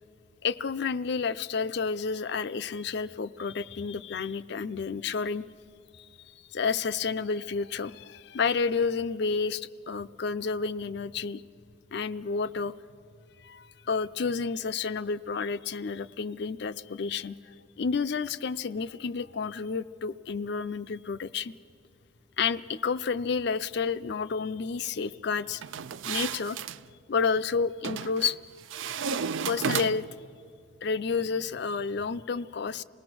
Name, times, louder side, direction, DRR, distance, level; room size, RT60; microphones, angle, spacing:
voice 1, 0.4-5.5 5.9-11.4 11.9-12.7 13.4-21.5 22.4-25.6 26.0-26.6 27.1-28.4 29.4-30.1 30.8-32.8, left 5 dB, 55° left, 14 dB, 0.5 m, -30 dB
sound 1, 25.6-26.8 27.8-28.4 28.7-30.2, right 6 dB, 75° right, 0.4 m, -33 dB
27.5 x 19.0 x 6.1 m, 2.3 s
head